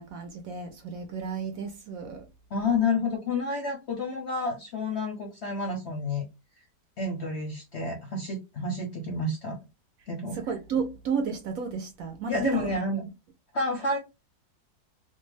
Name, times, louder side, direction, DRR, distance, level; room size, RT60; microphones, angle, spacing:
voice 1, 0.0-2.3 10.3-13.0, right 6 dB, 70° right, 0.9 m, -32 dB
voice 2, 2.5-6.2 7.0-9.6 10.1-10.4 12.3-13.0 13.5-14.0, left 3 dB, 60° left, 0.7 m, -29 dB
2.7 x 2.2 x 3.1 m
omnidirectional pair, 1.8 m